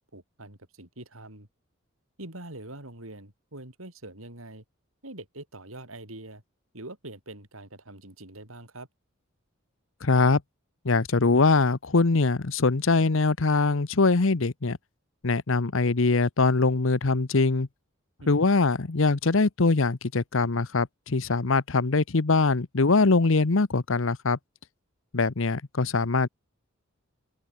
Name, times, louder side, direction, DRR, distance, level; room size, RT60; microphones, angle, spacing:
voice 1, 0.1-1.5 2.2-4.6 5.0-6.4 6.7-8.9 18.2-18.5, right 2 dB, 80° right, 6.5 m, -44 dB
voice 2, 10.0-10.4 10.8-14.8 15.2-17.7 18.3-24.4 25.1-26.3, left 3 dB, 65° left, 0.9 m, -23 dB
open air
head